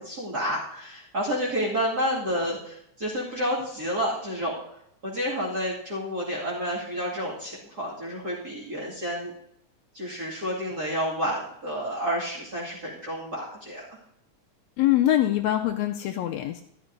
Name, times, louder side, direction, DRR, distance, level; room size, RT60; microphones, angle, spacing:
voice 1, 0.0-4.6 5.0-9.3 9.9-14.0, equal, 35° right, -6 dB, 2.5 m, -30 dB
voice 2, 14.8-16.6, left 13 dB, 80° left, 3 dB, 1.8 m, -23 dB
12.5 x 12.0 x 2.7 m, 0.76 s
omnidirectional pair, 3.4 m